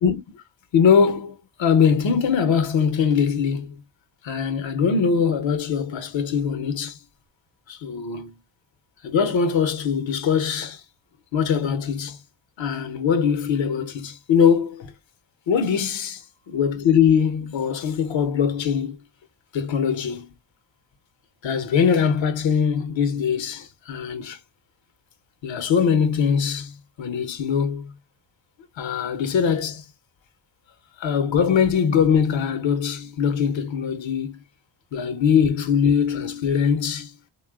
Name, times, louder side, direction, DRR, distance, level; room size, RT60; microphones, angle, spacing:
voice 1, 0.0-0.4 0.7-3.8 4.2-7.0 7.7-8.3 9.0-10.8 11.3-12.2 12.6-14.9 15.5-16.1 16.5-19.0 19.5-20.3 21.4-24.4 25.4-27.9 28.8-29.8 31.0-34.4 34.9-37.1, left 7 dB, 75° left, 0.8 m, -22 dB
3.0 x 2.3 x 2.3 m
cardioid pair, 45°, 46 cm